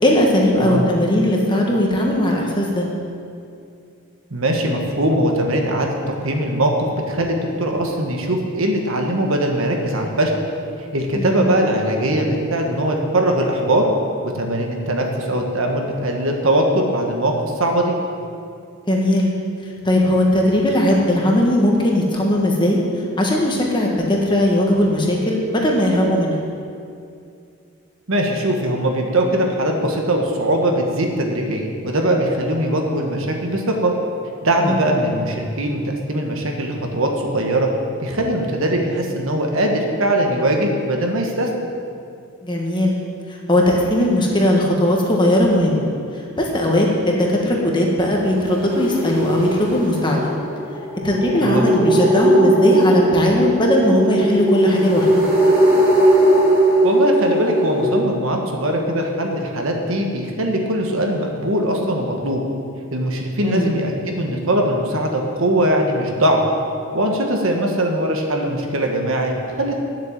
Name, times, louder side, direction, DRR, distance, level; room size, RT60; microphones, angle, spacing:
voice 1, 0.0-2.9 11.1-11.7 18.9-19.3 19.8-22.8 23.2-26.4 34.6-35.0 42.4-43.0 43.5-45.8 46.4-50.3 51.0-55.4 63.4-63.7, left 1 dB, 20° left, -1 dB, 1.4 m, -18 dB
voice 2, 4.3-10.3 10.9-13.9 14.2-17.9 28.1-33.9 34.4-37.7 38.0-41.5 51.4-51.7 56.8-62.4 62.9-66.4 66.9-69.9, right 1 dB, 65° right, 2 dB, 1.4 m, -21 dB
sound 1, 48.1-58.0, right 1 dB, 10° right, 2.2 m, -18 dB
10.0 x 7.7 x 7.4 m, 2.5 s
head